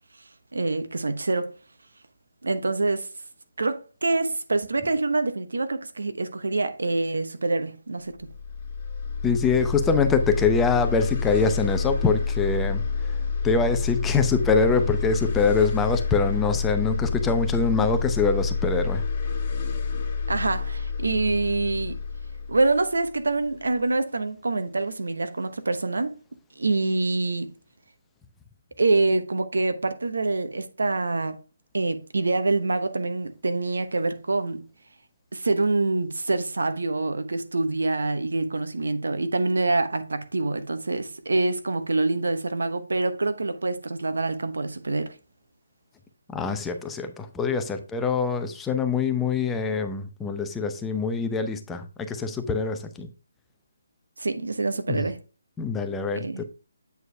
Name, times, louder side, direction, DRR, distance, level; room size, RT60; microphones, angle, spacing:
voice 1, 0.5-1.6 2.4-3.1 3.6-8.3 20.3-22.0 22.5-26.2 26.6-27.5 28.8-31.4 31.7-34.6 35.3-45.2 54.2-55.2 56.1-56.4, right 3 dB, 80° right, 1.0 m, -26 dB
sound 1, 8.2-23.6, left 5 dB, 30° left, 2.4 m, -28 dB
voice 2, 9.2-12.8 13.4-19.0 46.3-53.1 54.9-55.0 55.6-56.5, left 5 dB, 10° left, 0.7 m, -24 dB
8.2 x 4.5 x 3.3 m
hypercardioid pair, 155°, 0 cm